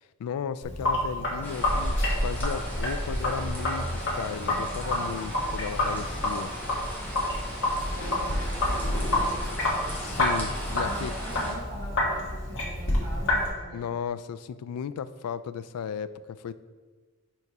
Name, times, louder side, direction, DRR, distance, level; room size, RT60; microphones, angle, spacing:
voice 1, 0.2-6.5 9.9-11.1 13.7-16.5, left 7 dB, 80° left, 14 dB, 0.3 m, -35 dB
Sink (filling or washing), 0.6-13.5, left 1 dB, 55° left, 1.5 m, -29 dB
sound 1, 1.4-11.5, equal, 10° left, 1.3 m, -35 dB
voice 2, 4.8-6.5 7.7-10.3 10.8-13.9, right 1 dB, 45° right, -6 dB, 1.2 m, -43 dB
4.7 x 4.5 x 5.3 m, 1.4 s
head